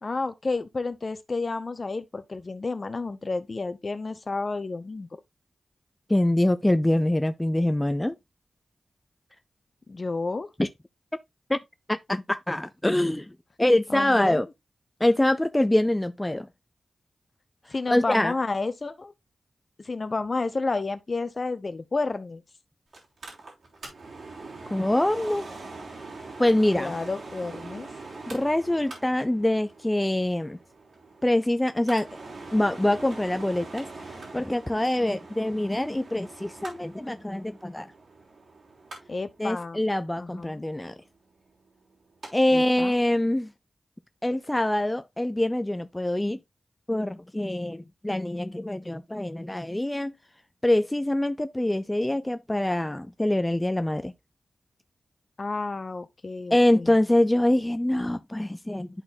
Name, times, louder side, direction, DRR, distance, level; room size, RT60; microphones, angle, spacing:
voice 1, 0.0-5.1 9.9-10.5 13.9-14.4 17.7-19.1 19.8-22.4 26.8-27.9 39.1-39.8 40.2-40.6 42.5-42.9 55.4-56.9, left 3 dB, 50° left, 0.9 m, -31 dB
voice 2, 6.1-8.2 10.6-10.7 11.5-11.6 11.9-14.5 15.0-16.5 17.9-18.3 24.7-25.5 26.4-26.9 28.3-30.6 31.2-32.1 32.5-37.9 39.4-41.0 42.3-43.5 44.2-46.4 46.9-50.1 50.6-54.1 56.5-58.9, left 1 dB, 15° left, 0.5 m, -24 dB
Mechanical fan, 22.9-42.3 42.6-42.7, right 3 dB, 75° right, 3.1 m, -43 dB
11.0 x 4.1 x 2.7 m
cardioid pair, 50°, 0 cm